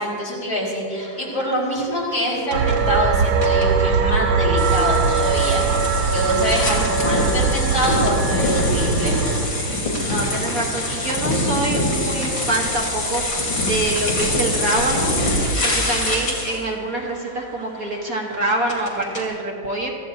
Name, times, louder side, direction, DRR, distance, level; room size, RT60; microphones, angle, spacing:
voice 1, 0.0-9.2, equal, 50° left, -5 dB, 4.6 m, -25 dB
sound 1, 0.9-19.2, equal, 25° left, 2.7 m, -39 dB
sound 2, 2.5-9.5, right 4 dB, 80° right, 1.6 m, -20 dB
sound 3, 4.6-16.6, left 1 dB, 70° left, 3.3 m, -24 dB
voice 2, 10.1-15.2 15.6-19.9, right 2 dB, 50° right, -1 dB, 1.6 m, -25 dB
24.5 x 14.5 x 2.8 m, 2.6 s
omnidirectional pair, 2.1 m